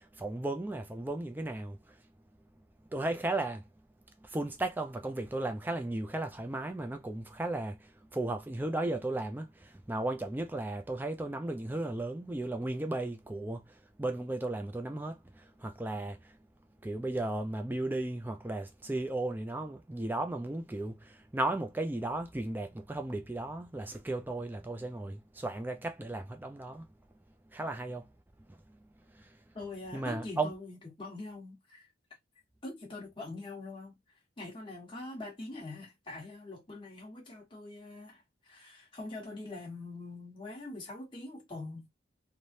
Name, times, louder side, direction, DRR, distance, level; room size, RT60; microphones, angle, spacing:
voice 1, 0.0-2.0 2.9-3.6 4.2-16.4 16.8-26.9 27.5-28.1 28.5-28.6 29.1-29.3 29.9-30.5, right 2 dB, 10° right, 0.3 m, -35 dB
voice 2, 29.5-31.9 32.6-34.0 34.4-41.9, left 2 dB, 25° left, 1.3 m, -43 dB
3.1 x 2.1 x 2.6 m
head